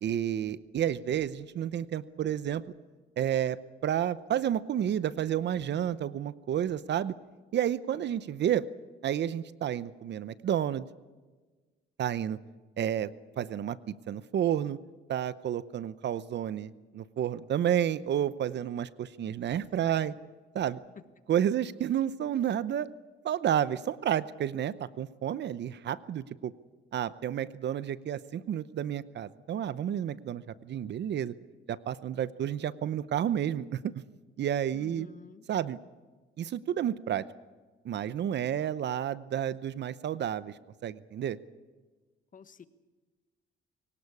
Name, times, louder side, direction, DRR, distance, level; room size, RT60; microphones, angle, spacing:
voice 1, 0.0-2.6 3.2-7.1 7.5-8.7 9.0-10.9 12.0-12.4 12.8-13.1 13.4-14.8 15.1-20.1 20.5-20.8 21.3-22.9 23.2-26.5 26.9-31.3 31.7-34.0 34.4-35.1 35.5-35.8 36.4-37.3 37.8-40.5 40.8-41.4, right 10 dB, 60° right, 16 dB, 0.8 m, -30 dB
voice 2, 34.7-35.4 42.3-42.7, left 6 dB, 45° left, 12 dB, 1.4 m, -50 dB
23.5 x 18.0 x 8.4 m, 1.3 s
cardioid pair, 90°, 20 cm